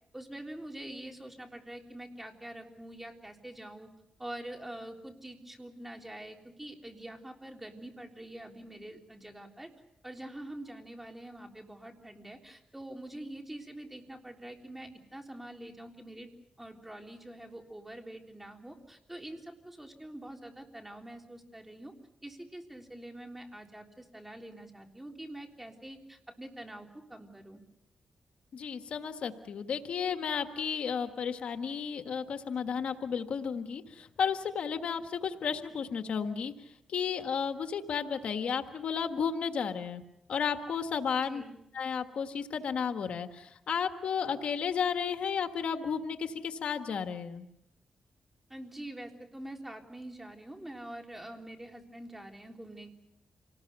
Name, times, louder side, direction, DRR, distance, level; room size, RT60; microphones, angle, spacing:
voice 1, 0.1-3.9 4.2-9.7 10.0-16.3 16.6-21.9 22.2-27.6 41.2-41.6 48.5-52.9, right 1 dB, 10° right, 3 dB, 3.7 m, -45 dB
voice 2, 28.5-36.5 36.9-40.0 40.3-41.4 41.7-47.5, left 6 dB, 75° left, 7 dB, 1.6 m, -33 dB
27.5 x 19.5 x 6.9 m, 0.81 s
cardioid pair, 80°, 2 cm